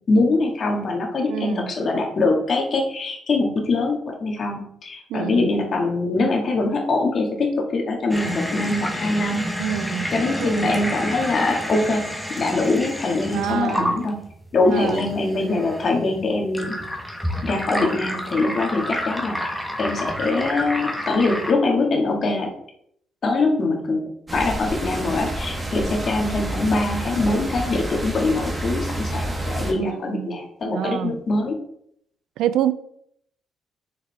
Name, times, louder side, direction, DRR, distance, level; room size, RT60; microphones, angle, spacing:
voice 1, 0.1-9.4 10.1-12.1 12.4-14.2 14.5-16.7 17.4-22.5 23.2-24.0 24.3-31.6, left 2 dB, 50° left, 1.8 m, -23 dB
voice 2, 1.3-1.7 5.1-5.5 9.6-10.1 10.4-10.5 13.3-14.1 14.7-15.1 29.7-30.4 30.7-31.2 32.4-32.7, right 11 dB, 85° right, 0.4 m, -26 dB
sound 1, 8.1-21.5, equal, 5° right, 1.2 m, -30 dB
sound 2, 24.3-29.7, right 1 dB, 20° right, 1.5 m, -29 dB
6.5 x 4.8 x 3.5 m
cardioid pair, 90°, 0 cm